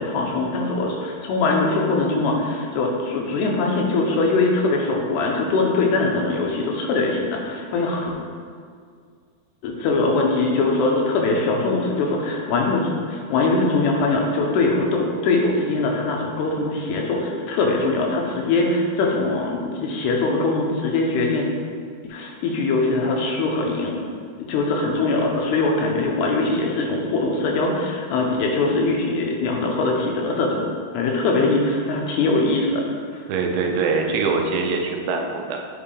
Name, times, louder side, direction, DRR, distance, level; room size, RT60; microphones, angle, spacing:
voice 1, 0.0-8.1 9.6-21.4 22.0-23.9 24.4-32.9 33.1-33.2, left 3 dB, 90° left, 0 dB, 2.9 m, -22 dB
voice 2, 33.3-35.6, right 4 dB, 85° right, 2 dB, 2.8 m, -23 dB
7.5 x 5.4 x 3.4 m, 2.1 s
omnidirectional pair, 4.7 m